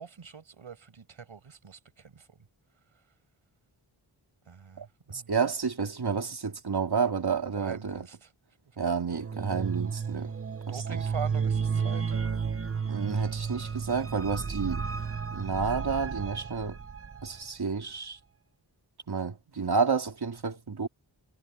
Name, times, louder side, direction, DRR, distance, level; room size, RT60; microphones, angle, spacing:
voice 1, 0.0-2.4 4.5-5.3 7.5-8.3 8.8-8.9 10.7-12.3, right 6 dB, 90° right, 5.7 m, -43 dB
voice 2, 4.8-8.1 8.8-10.3 10.7-11.0 12.9-14.8 15.3-16.8 17.2-18.2 19.1-20.9, right 5 dB, 55° right, 2.6 m, -30 dB
sound 1, 9.1-17.4, right 6 dB, 30° right, 0.8 m, -32 dB
wide cardioid pair, 75°, 47 cm